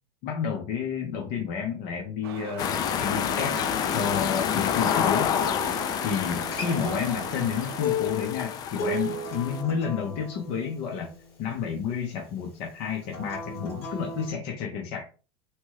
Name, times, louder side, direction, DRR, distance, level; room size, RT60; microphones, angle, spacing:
voice 1, 0.2-3.6 3.9-5.3 6.0-11.1 11.4-15.1, left 7 dB, 50° left, 2 dB, 0.7 m, -30 dB
sound 1, 2.2-7.8, right 7 dB, 80° right, 0.5 m, -40 dB
sound 2, 2.6-9.6, left 8 dB, 30° left, 0.3 m, -28 dB
Acoustic guitar, 6.3-11.5 13.1-14.3, left 3 dB, 80° left, 1.3 m, -35 dB
2.9 x 2.2 x 3.1 m, 0.36 s
supercardioid pair, 120°, 13 cm